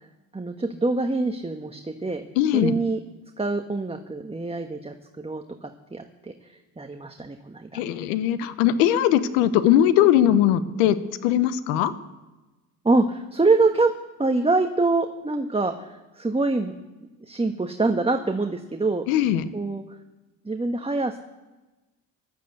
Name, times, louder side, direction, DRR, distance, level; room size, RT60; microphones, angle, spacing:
voice 1, 0.3-2.3 2.5-3.0 3.4-7.8 12.8-13.9 14.2-16.8 17.2-19.0 19.5-19.8 20.4-21.2, right 3 dB, 15° right, 5 dB, 1.3 m, -25 dB
voice 2, 2.4-2.7 7.7-11.0 11.2-11.9 19.1-19.4, left 11 dB, 90° left, 14 dB, 1.0 m, -20 dB
13.5 x 12.0 x 8.1 m, 1.1 s
supercardioid pair, 60°, 42 cm